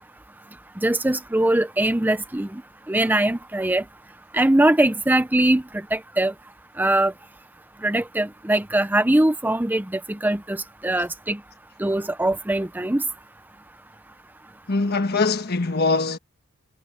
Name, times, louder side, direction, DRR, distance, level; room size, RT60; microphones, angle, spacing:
voice 1, 0.8-2.6 2.9-3.8 4.3-6.3 6.8-7.1 7.8-11.4 11.8-13.0, right 1 dB, 10° right, 0.6 m, -21 dB
voice 2, 14.7-16.2, left 3 dB, 50° left, 1.4 m, -22 dB
head